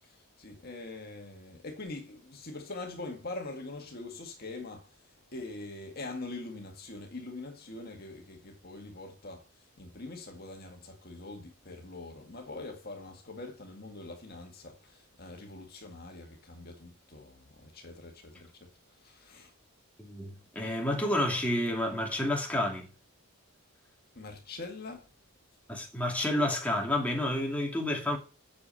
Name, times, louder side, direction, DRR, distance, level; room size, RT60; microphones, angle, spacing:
voice 1, 0.0-19.5 24.2-25.1, left 2 dB, 45° left, 1.9 m, -43 dB
voice 2, 20.0-22.9 25.7-28.2, left 1 dB, 5° left, 2.5 m, -30 dB
8.4 x 6.9 x 7.6 m
head